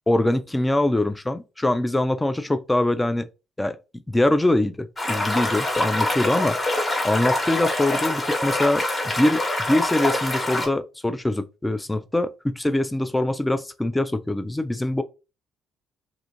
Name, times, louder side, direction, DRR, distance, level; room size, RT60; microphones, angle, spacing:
voice 1, 0.1-3.3 3.6-3.8 4.1-6.6 7.0-9.4 9.7-15.0, left 1 dB, 15° left, 0.3 m, -23 dB
sound 1, 5.0-10.7, left 1 dB, 30° left, 1.1 m, -25 dB
2.5 x 2.4 x 2.8 m
hypercardioid pair, 45°, 0 cm